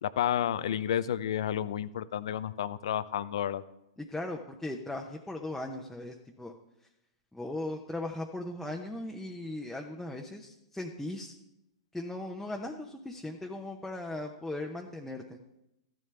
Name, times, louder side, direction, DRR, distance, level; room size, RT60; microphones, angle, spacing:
voice 1, 0.0-3.6, left 10 dB, 70° left, 16 dB, 0.6 m, -31 dB
voice 2, 4.0-6.5 7.3-11.3 11.9-15.4, left 1 dB, 5° left, 0 dB, 0.9 m, -38 dB
13.5 x 11.0 x 3.4 m, 0.87 s
hypercardioid pair, 120°, 3 cm